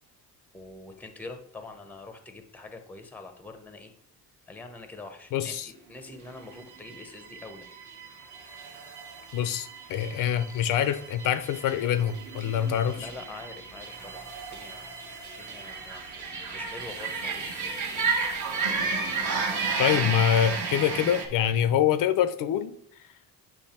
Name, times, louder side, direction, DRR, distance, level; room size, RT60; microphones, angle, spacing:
voice 1, 0.5-3.9 4.5-7.7 13.0-15.0 15.4-17.8, left 3 dB, 5° left, 7 dB, 0.6 m, -45 dB
voice 2, 5.3-5.7 9.3-13.1 19.8-22.7, left 9 dB, 60° left, 12 dB, 0.5 m, -25 dB
sound 1, 6.2-21.3, right 4 dB, 50° right, 1.2 m, -33 dB
8.4 x 3.1 x 4.3 m, 0.65 s
cardioid pair, 145°, 37 cm